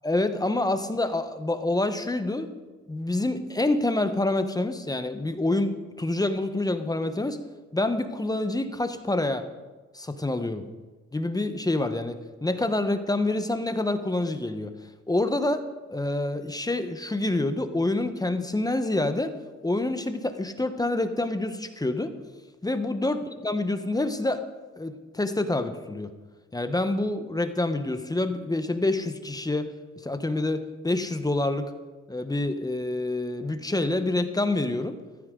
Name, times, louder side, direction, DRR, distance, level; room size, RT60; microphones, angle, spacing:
voice 1, 0.0-2.5 2.9-7.4 7.7-9.4 9.9-10.7 11.1-14.7 15.1-19.3 19.6-22.1 22.6-24.4 24.8-26.1 26.5-29.7 30.0-31.7 32.1-35.0, left 2 dB, 10° left, 9 dB, 1.0 m, -27 dB
14.5 x 14.0 x 3.8 m, 1.2 s
cardioid pair, 90°, 30 cm